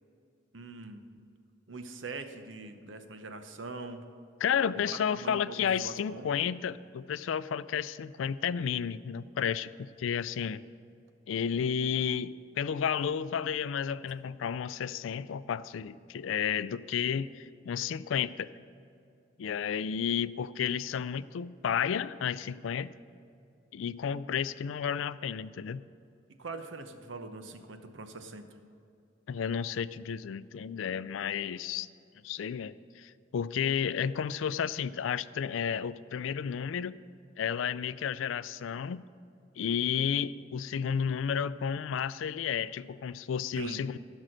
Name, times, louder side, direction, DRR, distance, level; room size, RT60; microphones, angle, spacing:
voice 1, 0.5-1.0 1.7-4.0 4.9-6.3 26.4-28.4 43.6-43.8, right 3 dB, 80° right, 8 dB, 0.9 m, -42 dB
voice 2, 4.4-10.6 11.3-18.5 19.4-22.9 23.7-25.8 29.3-31.9 32.2-36.9 37.4-39.0 39.6-44.0, left 7 dB, 85° left, 17 dB, 0.4 m, -32 dB
15.0 x 6.3 x 6.4 m, 2.6 s
head